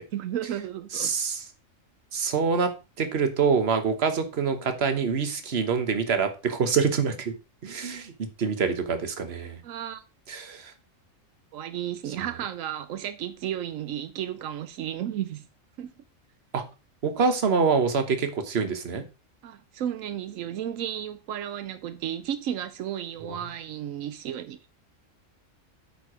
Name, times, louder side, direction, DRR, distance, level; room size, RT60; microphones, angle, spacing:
voice 1, 0.1-1.2 9.6-10.0 11.5-15.5 15.8-15.9 19.4-24.6, right 10 dB, 85° right, 1.0 m, -33 dB
voice 2, 0.9-1.5 2.1-2.7 3.0-7.3 7.6-9.6 10.3-10.7 12.1-12.2 16.5-16.6 17.0-19.0 23.2-23.3, right 5 dB, 55° right, 1.4 m, -26 dB
8.9 x 4.7 x 4.9 m
omnidirectional pair, 1.3 m